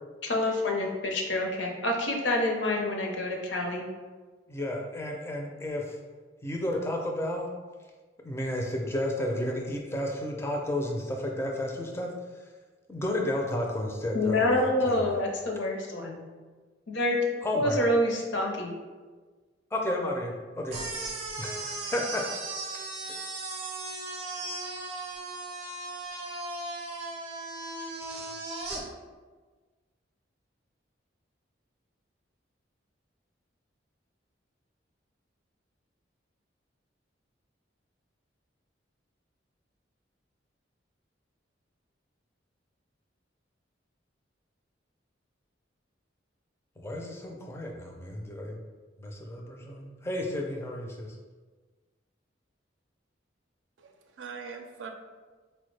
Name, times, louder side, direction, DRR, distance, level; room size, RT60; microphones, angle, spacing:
voice 1, 0.2-3.9 14.1-16.2 16.9-17.2 17.5-18.8, left 1 dB, 75° left, 1 dB, 0.6 m, -27 dB
voice 2, 4.5-6.0 6.4-7.5 8.2-12.1 12.9-15.0 17.4-17.8 19.7-20.8 21.4-22.8 46.8-48.6 49.0-51.2, left 1 dB, 15° left, 1 dB, 0.4 m, -32 dB
sound 1, 20.7-28.8, right 2 dB, 35° right, 0.5 m, -37 dB
voice 3, 53.8-54.9, right 5 dB, 85° right, 5 dB, 0.4 m, -42 dB
4.3 x 2.1 x 3.1 m, 1.4 s
head